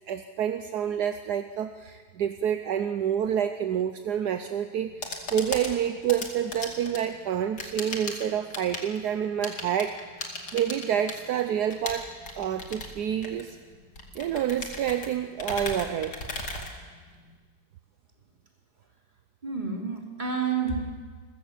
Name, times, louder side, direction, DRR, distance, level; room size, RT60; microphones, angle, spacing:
voice 1, 0.1-10.0 10.5-13.6 14.1-16.1, right 9 dB, 70° right, 8 dB, 1.3 m, -28 dB
sound 1, 4.7-17.4, left 2 dB, 75° left, 3.2 m, -38 dB
voice 2, 19.4-20.9, right 5 dB, 25° right, 0 dB, 3.7 m, -29 dB
28.0 x 15.5 x 7.4 m, 1.5 s
omnidirectional pair, 1.8 m